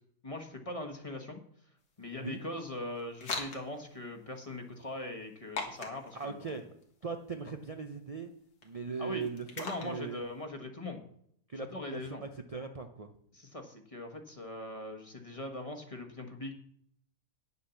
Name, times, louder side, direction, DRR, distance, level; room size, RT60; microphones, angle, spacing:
voice 1, 0.2-1.4 2.0-6.6 9.0-9.2 9.6-11.0 11.5-12.2 13.3-16.5, left 1 dB, 25° left, 4 dB, 1.3 m, -41 dB
sound 1, 1.8-10.4, left 4 dB, 90° left, 2.3 m, -45 dB
voice 2, 6.1-6.6 7.0-8.3 8.6-10.2 11.5-13.1, right 5 dB, 50° right, 5 dB, 0.4 m, -39 dB
9.4 x 6.9 x 7.0 m, 0.68 s
omnidirectional pair, 1.7 m